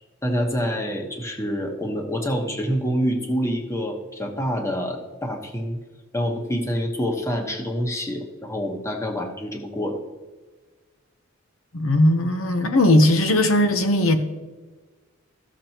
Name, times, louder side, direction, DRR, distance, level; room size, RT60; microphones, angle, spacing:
voice 1, 0.2-5.8 6.1-10.0, equal, 15° left, 2 dB, 1.2 m, -26 dB
voice 2, 11.7-14.2, left 1 dB, 90° left, 7 dB, 0.9 m, -18 dB
15.0 x 6.8 x 3.0 m, 1.3 s
head